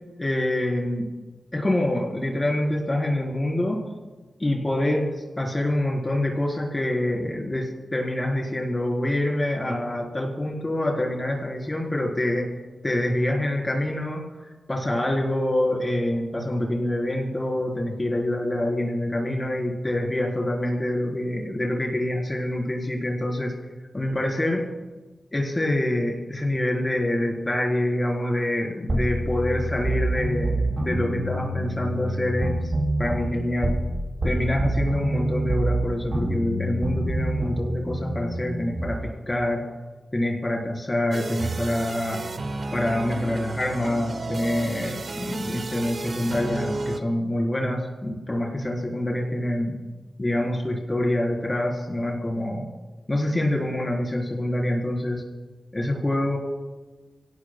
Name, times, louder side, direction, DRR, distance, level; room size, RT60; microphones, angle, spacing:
voice 1, 0.2-1.1 1.5-3.8 4.4-12.5 12.8-14.2 14.7-23.5 23.9-24.6 25.3-32.7 33.0-33.7 34.2-39.6 40.1-42.2 42.7-49.8 50.2-52.7 53.1-55.2 55.7-56.4, left 1 dB, 25° left, -1 dB, 4.0 m, -26 dB
sound 1, 28.9-33.9 34.2-39.0, right 1 dB, 45° right, 6.3 m, -27 dB
sound 2, 41.1-47.0, right 3 dB, 65° right, 1.2 m, -33 dB
29.0 x 18.0 x 2.3 m, 1.2 s
wide cardioid pair, 90°, 0 cm